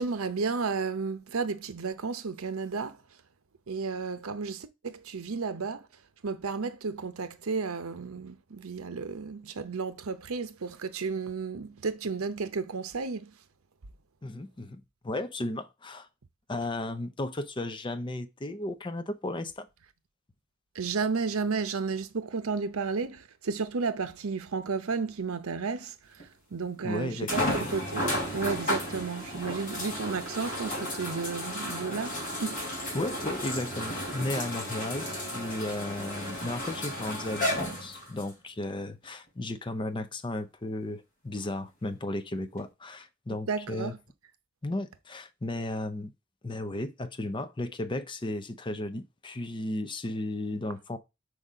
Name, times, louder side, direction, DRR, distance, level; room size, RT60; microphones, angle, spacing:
voice 1, 0.0-3.0 3.7-5.9 6.2-13.3 20.7-26.2 26.5-28.0 28.3-32.7 43.5-44.0, right 4 dB, 85° right, 0.7 m, -33 dB
voice 2, 14.2-16.1 16.5-19.7 26.8-27.7 32.9-43.9 44.6-46.1 46.4-51.0, left 2 dB, 25° left, 0.6 m, -34 dB
sound 1, 26.2-26.3 27.3-38.3 39.0-39.1 42.6-42.7, equal, 40° left, 3.1 m, -33 dB
4.8 x 4.1 x 4.9 m
head